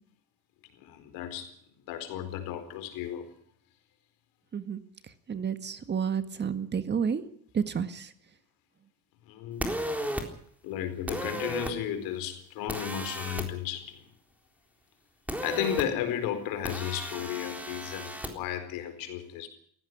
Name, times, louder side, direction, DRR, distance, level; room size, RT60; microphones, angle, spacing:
voice 1, 0.8-1.5 1.9-3.3 9.2-9.7 10.6-14.0 15.4-19.5, left 10 dB, 80° left, 8 dB, 4.4 m, -34 dB
voice 2, 4.5-7.2 7.5-8.1, right 7 dB, 30° right, 11 dB, 1.7 m, -31 dB
sound 1, 9.6-10.2 11.1-11.7 12.7-13.5 15.3-15.8 16.6-18.3, right 1 dB, 5° right, 3.8 m, -34 dB
18.0 x 15.5 x 9.6 m, 0.63 s
cardioid pair, 120°, 35 cm